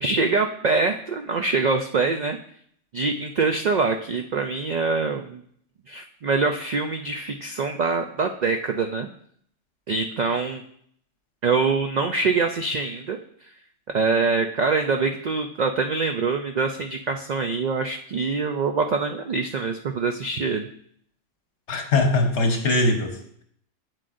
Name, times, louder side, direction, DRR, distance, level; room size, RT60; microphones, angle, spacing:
voice 1, 0.0-2.4 2.9-5.4 5.9-9.1 9.9-10.6 11.4-13.2 13.9-20.7, right 4 dB, 85° right, 5 dB, 0.3 m, -24 dB
voice 2, 21.7-23.4, left 2 dB, 65° left, 3 dB, 1.3 m, -22 dB
8.2 x 7.4 x 2.5 m, 0.65 s
omnidirectional pair, 1.3 m